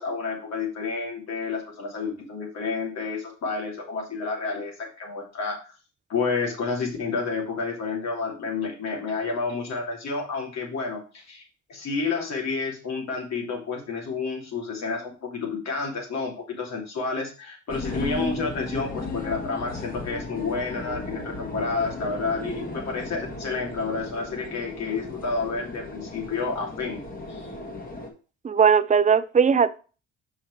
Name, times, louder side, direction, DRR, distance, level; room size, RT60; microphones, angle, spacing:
voice 1, 0.0-5.6 6.1-11.4 11.7-27.0 27.3-27.5, left 4 dB, 60° left, 2.9 m, -30 dB
sound 1, 17.7-28.1, left 2 dB, 30° left, 1.9 m, -35 dB
voice 2, 28.4-29.8, right 6 dB, 25° right, 0.5 m, -19 dB
5.6 x 5.5 x 4.7 m
cardioid pair, 90°, 30 cm